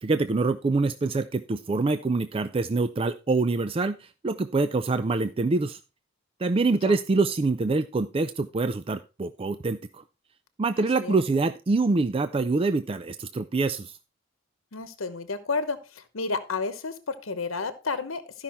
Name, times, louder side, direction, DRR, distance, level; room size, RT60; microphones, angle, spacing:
voice 1, 0.0-5.8 6.4-10.0 10.6-14.0, right 3 dB, 30° right, 11 dB, 0.4 m, -25 dB
voice 2, 14.7-18.4, left 4 dB, 80° left, 11 dB, 1.0 m, -31 dB
13.0 x 5.6 x 4.3 m, 0.31 s
head